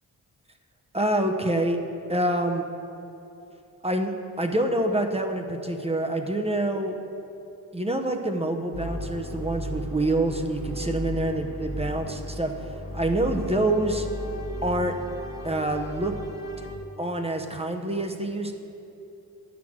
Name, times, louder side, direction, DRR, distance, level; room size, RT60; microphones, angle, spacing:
voice 1, 0.9-1.8 2.1-2.6 3.8-7.0 7.7-14.1 14.6-14.9 15.4-16.1 16.6-16.7 17.0-18.5, right 1 dB, 15° right, 4 dB, 0.8 m, -26 dB
sound 1, 8.7-16.8, equal, 60° left, 1.4 m, -35 dB
9.2 x 6.1 x 6.1 m, 2.9 s
cardioid pair, 55°, 39 cm